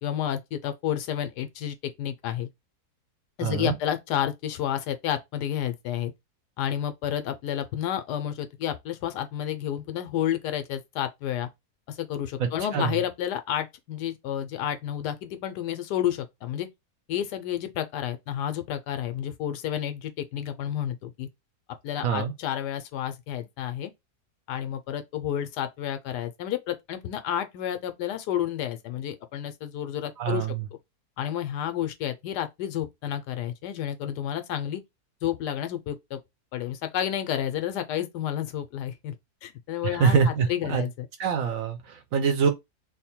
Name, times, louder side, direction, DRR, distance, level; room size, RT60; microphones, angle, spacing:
voice 1, 0.0-2.5 3.4-6.1 6.6-11.5 11.9-16.7 17.1-21.3 21.8-23.9 24.5-30.5 31.2-34.8 35.2-36.2 36.5-39.1 39.4-41.1, left 10 dB, 85° left, 1.2 m, -30 dB
voice 2, 3.4-3.7 12.4-13.0 22.0-22.3 30.2-30.6 40.0-40.8 41.2-42.5, right 6 dB, 65° right, 1.0 m, -25 dB
3.4 x 2.1 x 4.3 m
omnidirectional pair, 1.7 m